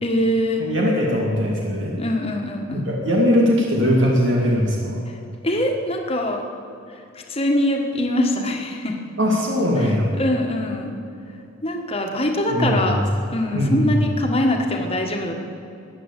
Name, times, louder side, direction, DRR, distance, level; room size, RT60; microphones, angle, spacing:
voice 1, 0.0-0.6 2.0-2.9 5.4-6.4 6.9-7.0 7.3-9.0 9.8-11.0 11.6-13.0 13.3-15.3, left 1 dB, 30° left, 2 dB, 1.6 m, -23 dB
voice 2, 0.6-1.9 2.7-5.0 9.2-10.1 12.5-13.0 13.5-14.0, equal, 65° right, -2 dB, 2.4 m, -20 dB
15.0 x 9.8 x 8.3 m, 2.7 s
head